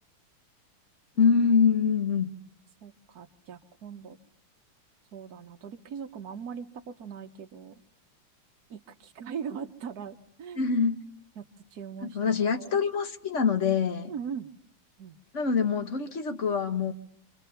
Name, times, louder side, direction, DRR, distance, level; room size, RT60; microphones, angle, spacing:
voice 1, 1.2-2.3 10.6-11.0 12.0-14.1 15.3-16.9, left 6 dB, 40° left, 7 dB, 1.4 m, -25 dB
voice 2, 2.8-4.2 5.1-7.8 8.7-10.7 11.4-11.5 11.7-12.8 14.1-14.5 15.0-15.2, right 7 dB, 50° right, 5 dB, 1.6 m, -40 dB
27.0 x 26.5 x 5.7 m, 0.63 s
omnidirectional pair, 2.3 m